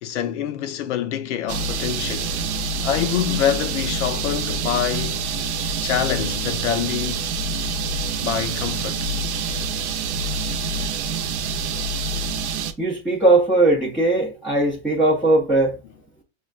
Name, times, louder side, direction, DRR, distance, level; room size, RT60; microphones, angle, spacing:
voice 1, 0.0-2.4 2.8-5.2 5.8-7.3 8.2-9.1, left 10 dB, 75° left, 0.5 m, -25 dB
sound 1, 1.5-12.7, right 4 dB, 70° right, 0.7 m, -26 dB
voice 2, 12.8-15.8, right 2 dB, 5° right, 0.4 m, -19 dB
6.1 x 2.2 x 2.3 m
supercardioid pair, 155°, 36 cm